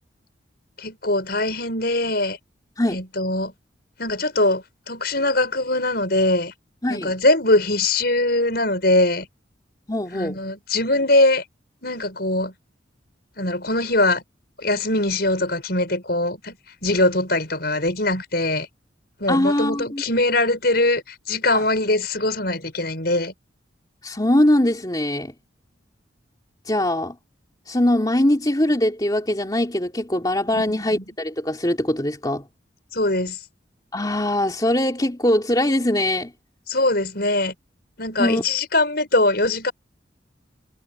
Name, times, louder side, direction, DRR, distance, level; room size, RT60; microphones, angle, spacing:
voice 1, 0.8-2.4 2.9-3.5 4.0-6.5 6.9-9.3 10.1-11.4 11.8-12.5 13.4-14.2 14.6-16.6 16.8-18.7 19.2-23.3 30.5-30.6 30.9-31.0 32.9-33.4 36.7-37.5 38.0-39.7, left 2 dB, 55° left, 6.7 m, -22 dB
voice 2, 6.8-7.1 9.9-10.4 19.3-20.0 21.5-21.6 24.0-25.3 26.6-27.2 27.7-32.5 33.9-36.3 38.2-38.4, left 1 dB, 20° left, 3.0 m, -21 dB
head